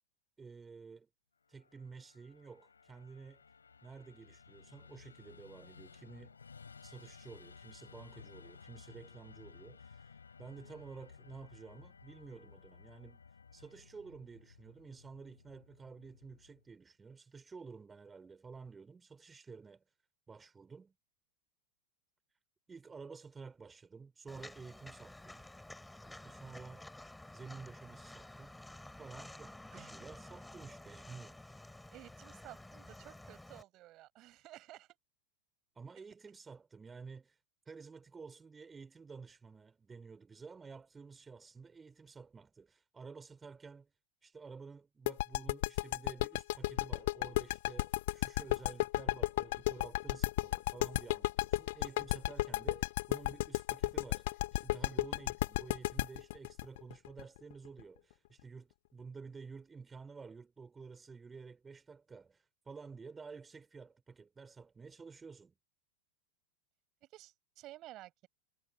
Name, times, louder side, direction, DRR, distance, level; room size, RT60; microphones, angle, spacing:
voice 1, 0.4-1.1 1.5-3.4 3.8-6.4 6.8-13.2 13.5-19.9 20.3-20.9 22.7-25.4 26.0-26.9 27.3-28.5 29.0-31.6 35.7-43.9 44.2-65.5, right 5 dB, 15° right, 4.1 m, -52 dB
Musical instrument, 1.4-16.8, left 5 dB, 75° left, 4.9 m, -57 dB
Walk footsteps, 24.3-33.6, left 1 dB, 5° left, 5.8 m, -52 dB
voice 2, 29.7-30.1 31.9-34.9 36.0-36.1 67.0-68.3, right 16 dB, 35° right, 6.8 m, -54 dB
sound 1, 45.1-57.8, left 19 dB, 50° left, 0.4 m, -33 dB
figure-of-eight pair, 90°, 0 cm